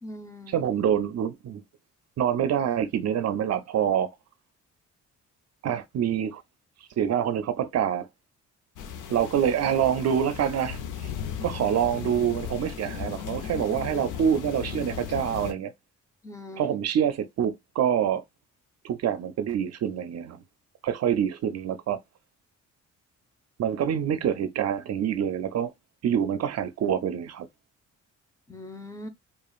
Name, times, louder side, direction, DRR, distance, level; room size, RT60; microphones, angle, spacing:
voice 1, 0.0-0.6 16.2-16.8 28.5-29.1, left 1 dB, 10° left, 0.9 m, -41 dB
voice 2, 0.5-1.6 2.2-4.1 5.6-6.4 7.0-8.1 9.1-11.1 11.4-15.7 16.6-18.2 18.8-20.4 20.8-22.0 23.6-25.7 26.0-27.5, right 9 dB, 55° right, 0.5 m, -26 dB
sound 1, 8.8-15.5, left 8 dB, 85° left, 0.8 m, -36 dB
4.9 x 2.5 x 2.4 m
cardioid pair, 90°, 30 cm